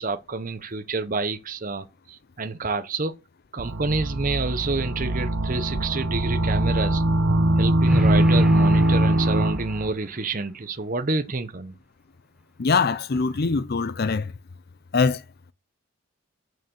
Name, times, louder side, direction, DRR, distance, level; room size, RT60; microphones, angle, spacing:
voice 1, 0.0-3.1 3.5-7.0 7.6-11.7, right 3 dB, 40° right, 0.7 m, -28 dB
sound 1, 3.6-9.9, right 1 dB, 70° right, 1.2 m, -21 dB
sound 2, 7.9-9.9, equal, 5° right, 0.9 m, -30 dB
voice 2, 12.6-14.3 14.9-15.2, left 4 dB, 45° left, 0.5 m, -22 dB
6.9 x 6.3 x 6.5 m
head